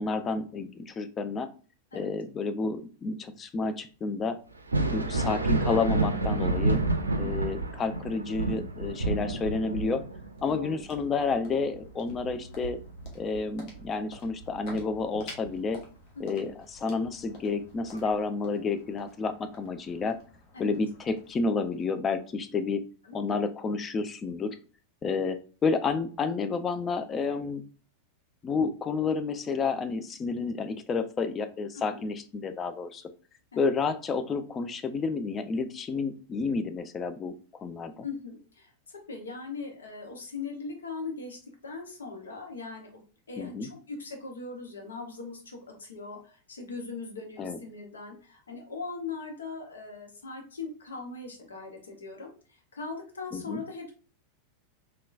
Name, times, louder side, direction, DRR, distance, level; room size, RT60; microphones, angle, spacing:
voice 1, 0.0-1.5 1.9-4.4 4.9-6.8 7.2-10.0 10.4-12.8 13.1-15.8 16.2-20.2 20.6-22.8 23.1-24.6 25.0-27.6 28.4-33.0 33.6-37.3 37.6-38.1 43.4-43.7 47.4-47.6 53.3-53.6, left 4 dB, 25° left, 9 dB, 0.3 m, -30 dB
Thunder, 4.5-13.9 14.3-15.5 17.0-17.1 17.9-18.1, right 2 dB, 80° right, 0.4 m, -30 dB
voice 2, 7.2-7.5 10.4-10.8 16.2-16.4 20.5-20.8 23.0-23.2 31.7-32.1 33.5-33.6 38.0-43.0 43.3-53.9, left 4 dB, 70° left, 2 dB, 0.8 m, -40 dB
sound 1, 10.2-22.3, left 2 dB, 45° left, 0.9 m, -51 dB
3.6 x 2.2 x 2.4 m, 0.39 s
figure-of-eight pair, 90°, 0 cm